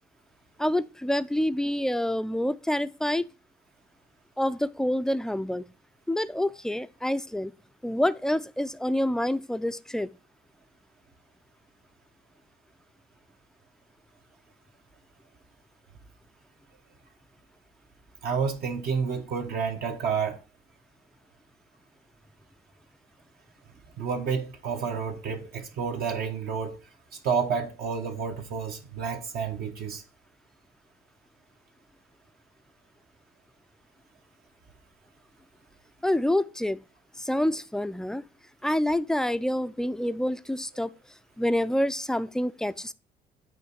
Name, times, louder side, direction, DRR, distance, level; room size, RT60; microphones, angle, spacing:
voice 1, 0.6-3.3 4.4-5.7 6.1-7.5 7.8-10.1 36.0-36.8 37.2-38.2 38.6-40.9 41.4-42.9, left 1 dB, 5° left, 0.4 m, -27 dB
voice 2, 18.2-20.4 24.0-26.8 27.2-30.0, right 6 dB, 65° right, 1.3 m, -30 dB
9.1 x 3.1 x 6.0 m
cardioid pair, 110°, 17 cm